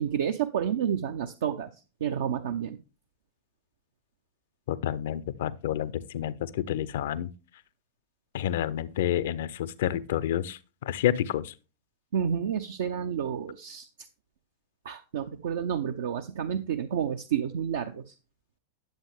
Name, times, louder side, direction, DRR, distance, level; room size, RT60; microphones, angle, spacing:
voice 1, 0.0-2.8 12.1-14.1 14.8-18.2, right 8 dB, 60° right, 0.6 m, -30 dB
voice 2, 4.7-7.3 8.3-11.5, left 11 dB, 55° left, 0.6 m, -29 dB
10.5 x 7.5 x 3.4 m
figure-of-eight pair, 90°, 0 cm